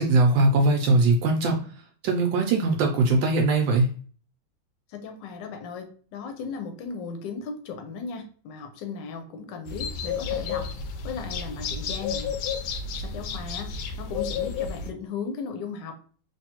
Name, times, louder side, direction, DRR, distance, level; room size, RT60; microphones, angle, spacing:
voice 1, 0.0-1.6 2.0-3.9, right 2 dB, 75° right, 3 dB, 1.2 m, -21 dB
voice 2, 4.9-10.7 11.0-12.3 13.0-13.7 14.0-15.9, left 5 dB, 70° left, 5 dB, 1.2 m, -36 dB
sound 1, 9.7-14.9, left 6 dB, 90° left, 1.4 m, -31 dB
3.5 x 2.6 x 2.9 m, 0.42 s
omnidirectional pair, 2.2 m